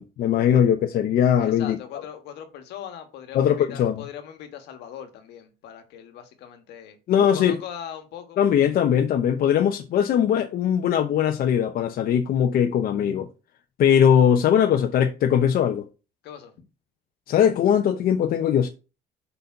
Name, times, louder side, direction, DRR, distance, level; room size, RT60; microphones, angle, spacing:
voice 1, 0.0-1.8 3.3-4.0 7.1-7.6 8.4-13.3 13.8-15.9 17.3-18.7, left 9 dB, 60° left, 0.8 m, -20 dB
voice 2, 1.4-7.0 7.3-8.4 16.2-16.5, left 9 dB, 80° left, 1.4 m, -40 dB
5.4 x 4.2 x 5.8 m
cardioid pair, 110°, 17 cm